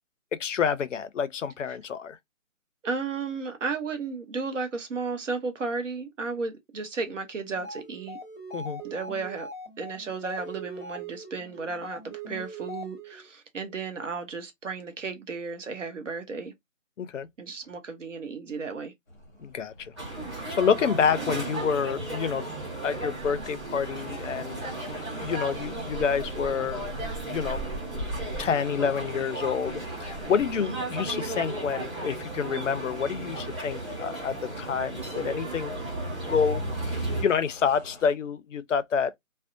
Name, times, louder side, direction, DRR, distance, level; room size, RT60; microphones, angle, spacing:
voice 1, 0.4-2.2 8.5-8.8 17.0-17.3 19.4-19.9 20.6-22.5 22.8-24.6 24.9-26.9 27.3-27.6 28.4-35.7 36.3-39.2, left 6 dB, 65° left, 0.5 m, -28 dB
voice 2, 2.8-8.2 8.8-9.5 9.8-12.0 12.3-16.5 17.4-18.9 30.6-30.8, right 4 dB, 65° right, 0.9 m, -34 dB
sound 1, 7.5-13.3, right 1 dB, ahead, 1.1 m, -40 dB
sound 2, 19.1-38.1, equal, 15° left, 0.7 m, -44 dB
sound 3, 20.0-37.2, right 2 dB, 20° right, 1.2 m, -35 dB
2.6 x 2.1 x 2.5 m
figure-of-eight pair, 160°, 41 cm